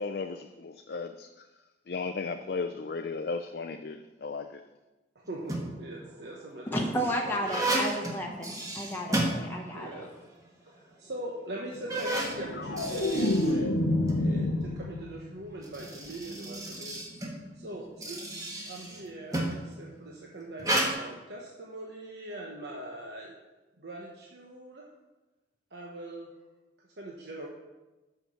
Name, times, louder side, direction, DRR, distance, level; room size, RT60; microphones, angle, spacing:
voice 1, 0.0-1.5 1.9-4.6, left 4 dB, 60° left, 6 dB, 0.4 m, -35 dB
voice 2, 5.1-7.4 9.7-10.1 10.6-13.7 14.2-23.3 23.8-24.9 25.7-26.3 27.0-27.5, right 1 dB, 65° right, -2 dB, 1.1 m, -42 dB
sound 1, 5.3-5.9 6.6-10.0 10.3-10.4 11.1-11.2 11.7-14.2 15.4-19.7 20.6-20.9, right 1 dB, 20° right, 1.3 m, -33 dB
voice 3, 6.7-10.0, equal, 10° left, -1 dB, 0.9 m, -32 dB
sound 2, 12.2-15.3 15.7-16.1, left 1 dB, 85° left, 0.9 m, -28 dB
8.1 x 5.9 x 6.5 m, 1.1 s
head